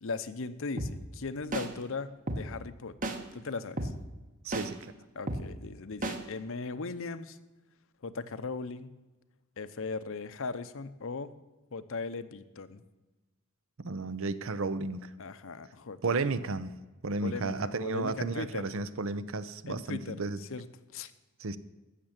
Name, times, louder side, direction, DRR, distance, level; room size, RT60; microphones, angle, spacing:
voice 1, 0.0-3.9 5.1-7.4 8.0-8.9 9.6-11.4 11.7-12.8 15.2-16.2 16.4-16.5 17.2-18.7 19.7-21.1, left 4 dB, 65° left, 0.8 m, -38 dB
sound 1, 0.8-0.9 1.5-1.7 2.3-2.4 3.0-3.2 3.8-3.9 4.5-4.7 5.3-5.4 6.0-6.2, right 2 dB, 40° right, 1.3 m, -32 dB
voice 2, 4.4-4.8 13.8-15.1 16.0-16.7 17.0-20.4 21.4-21.6, right 3 dB, 65° right, 0.7 m, -33 dB
14.0 x 6.8 x 8.9 m
head